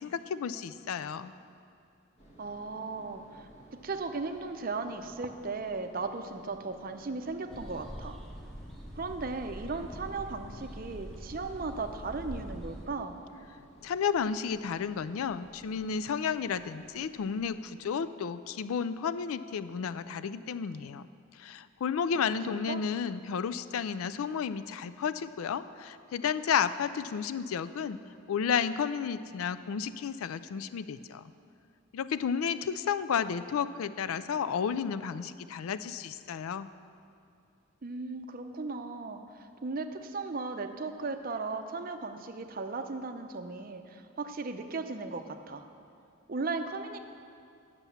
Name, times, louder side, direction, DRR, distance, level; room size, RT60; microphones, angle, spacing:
voice 1, 0.0-1.3 13.8-21.0 21.4-28.0 28.3-31.2 31.9-36.7, left 7 dB, 85° left, 14 dB, 0.4 m, -32 dB
sound 1, 2.2-17.5, equal, 30° left, 1.3 m, -56 dB
voice 2, 2.4-3.5 3.8-8.2 9.0-13.2 22.1-22.8 37.8-45.7 46.3-47.0, right 3 dB, 45° right, 7 dB, 0.5 m, -36 dB
sound 2, 7.5-12.9, equal, ahead, 0.6 m, -44 dB
9.2 x 6.7 x 7.0 m, 2.4 s
head